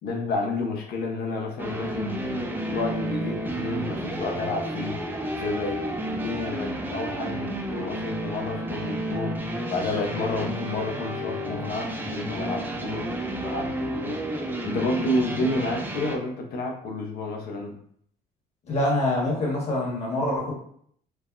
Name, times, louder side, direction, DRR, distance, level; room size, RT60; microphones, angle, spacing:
voice 1, 0.0-5.0 5.4-9.4 9.7-13.1 13.3-14.2 14.6-17.7, left 2 dB, 65° left, 2 dB, 0.7 m, -30 dB
sound 1, 1.6-16.2, right 1 dB, 10° right, 0.5 m, -31 dB
voice 2, 18.6-20.5, left 1 dB, 40° left, -3 dB, 1.2 m, -25 dB
3.3 x 2.1 x 2.4 m, 0.64 s
cardioid pair, 110°, 17 cm